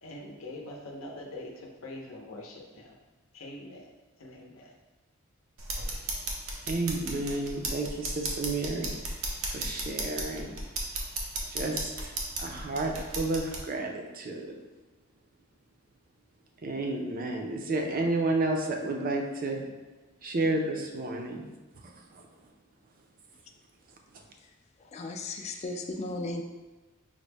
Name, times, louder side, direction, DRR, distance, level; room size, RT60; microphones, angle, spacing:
voice 1, 0.0-3.0 3.3-3.9 4.2-4.7, left 1 dB, 75° left, -1 dB, 0.6 m, -43 dB
sound 1, 5.6-13.6, right 2 dB, 85° right, 0.7 m, -35 dB
voice 2, 6.7-8.9 9.5-10.5 11.5-14.6 16.6-19.6 20.2-21.4 22.1-22.3, right 2 dB, 45° right, 2 dB, 0.5 m, -31 dB
voice 3, 24.9-26.4, left 2 dB, 30° left, 4 dB, 0.3 m, -35 dB
5.0 x 2.1 x 3.3 m, 1.2 s
head